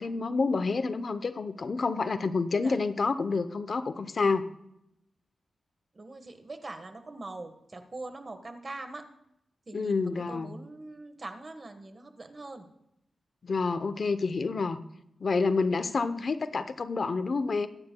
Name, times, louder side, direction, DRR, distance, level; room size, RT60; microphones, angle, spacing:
voice 1, 0.0-4.5 9.7-10.5 13.4-14.8 15.2-17.7, left 4 dB, 50° left, 12 dB, 0.7 m, -28 dB
voice 2, 5.9-9.0 9.7-12.7, right 2 dB, 35° right, 7 dB, 1.3 m, -42 dB
23.0 x 9.7 x 2.2 m, 0.82 s
wide cardioid pair, 105°, 0 cm